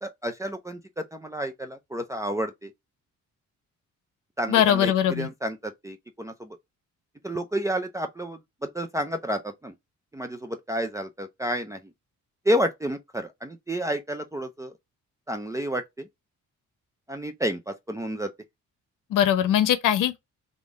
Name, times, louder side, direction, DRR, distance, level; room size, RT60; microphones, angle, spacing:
voice 1, 0.0-2.7 4.4-6.6 7.2-9.7 10.1-11.8 12.5-14.7 15.3-16.1 17.1-18.3, equal, 10° right, 0.4 m, -30 dB
voice 2, 4.5-5.3 19.1-20.2, left 10 dB, 85° left, 0.8 m, -21 dB
3.6 x 2.6 x 4.6 m
cardioid pair, 145°, 31 cm